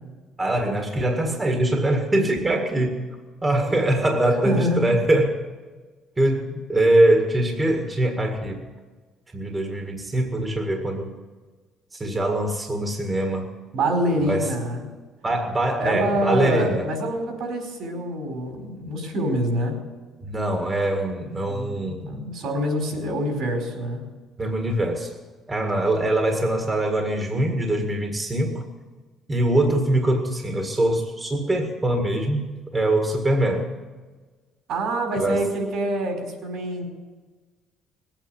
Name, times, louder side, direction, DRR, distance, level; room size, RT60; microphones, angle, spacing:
voice 1, 0.4-3.0 3.4-5.4 6.2-8.6 9.3-11.2 11.9-13.5 14.3-14.5 15.2-16.9 20.2-22.2 24.4-25.2 25.5-28.7 29.3-33.7 35.2-35.5, right 1 dB, 20° right, 3 dB, 1.9 m, -23 dB
voice 2, 4.4-4.9 13.7-14.9 15.8-19.8 21.5-24.0 34.7-36.9, right 1 dB, 70° right, 2 dB, 4.8 m, -26 dB
19.0 x 9.0 x 8.3 m, 1.4 s
cardioid pair, 95°, 0 cm